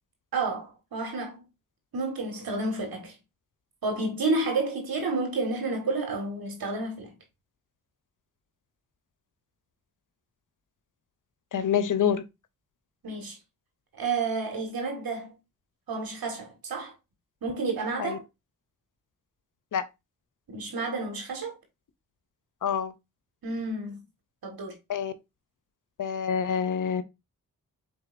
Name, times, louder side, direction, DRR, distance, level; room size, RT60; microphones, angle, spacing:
voice 1, 0.3-1.4 1.9-3.1 3.8-7.1 13.0-13.4 13.9-15.4 15.9-16.9 17.4-18.2 20.5-21.6 23.4-24.0 24.4-24.8, right 3 dB, 70° right, 1.7 m, -30 dB
voice 2, 11.5-12.2 18.0-18.2 19.7-19.8 22.6-22.9 24.9-25.1 26.0-27.0, left 8 dB, 60° left, 0.6 m, -26 dB
4.3 x 3.8 x 2.5 m
supercardioid pair, 45°, 36 cm